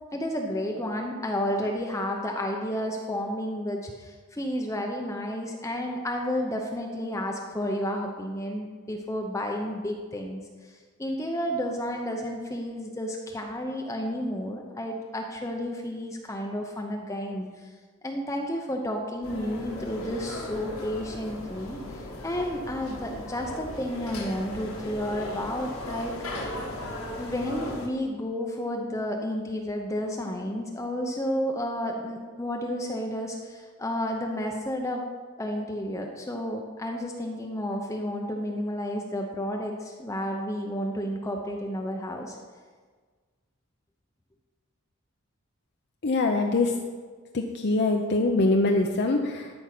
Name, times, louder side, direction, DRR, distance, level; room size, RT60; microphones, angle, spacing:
voice 1, 0.1-17.7 18.0-26.1 27.2-35.0 35.4-42.4, equal, 15° left, 1 dB, 0.7 m, -31 dB
sound 1, 19.2-27.9, left 1 dB, 75° left, 1.6 m, -37 dB
voice 2, 46.0-46.7 47.3-49.5, left 2 dB, 50° left, 2 dB, 0.6 m, -23 dB
13.0 x 5.3 x 6.0 m, 1.5 s
head